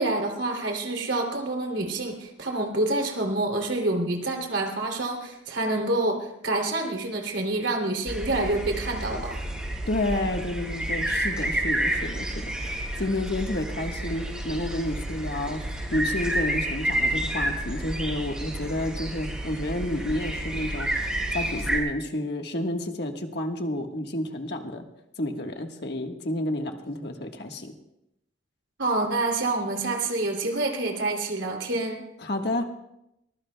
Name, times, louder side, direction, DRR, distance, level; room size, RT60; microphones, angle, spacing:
voice 1, 0.0-9.4 28.8-32.0, right 2 dB, 70° right, 1 dB, 3.0 m, -27 dB
sound 1, 8.1-21.8, right 1 dB, 5° right, 5.0 m, -30 dB
voice 2, 9.9-24.8 25.2-27.7 32.2-32.6, left 1 dB, 55° left, 4 dB, 1.4 m, -30 dB
23.0 x 20.5 x 2.3 m, 0.86 s
head